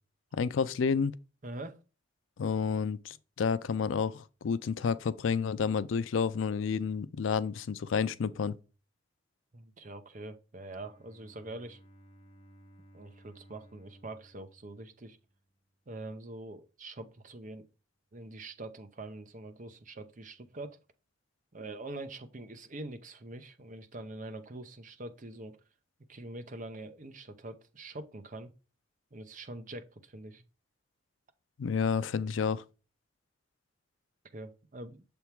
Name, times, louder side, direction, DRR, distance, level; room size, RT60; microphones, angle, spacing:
voice 1, 0.3-1.1 2.4-8.5 31.6-32.6, left 6 dB, 80° left, 0.4 m, -30 dB
voice 2, 1.4-1.8 9.5-11.8 12.9-15.2 15.9-17.6 18.1-20.8 21.5-25.6 26.1-28.5 29.1-30.4 34.3-35.0, right 2 dB, 40° right, 0.8 m, -44 dB
Bowed string instrument, 10.6-15.6, right 1 dB, 30° left, 1.0 m, -58 dB
6.9 x 3.5 x 4.5 m
head